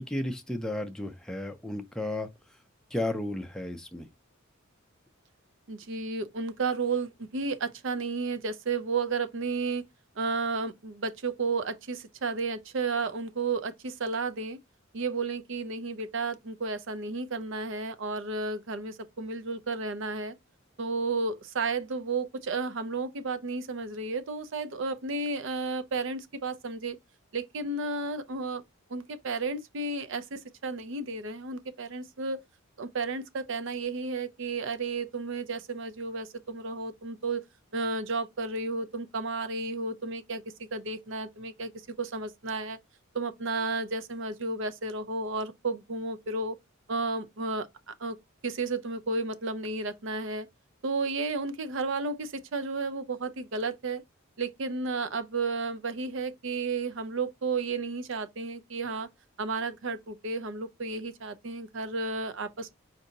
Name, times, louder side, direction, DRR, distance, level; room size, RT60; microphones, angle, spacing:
voice 1, 0.0-2.3 2.9-4.1, left 1 dB, 5° left, 0.5 m, -33 dB
voice 2, 5.7-9.8 10.2-14.6 14.9-20.4 20.8-27.0 27.3-28.6 28.9-32.4 32.8-37.4 37.7-40.4 40.7-41.7 42.0-42.8 43.1-46.6 46.9-48.2 48.4-50.5 50.8-54.0 54.4-59.1 59.4-62.7, right 3 dB, 60° right, 0.6 m, -32 dB
4.5 x 2.8 x 3.8 m
head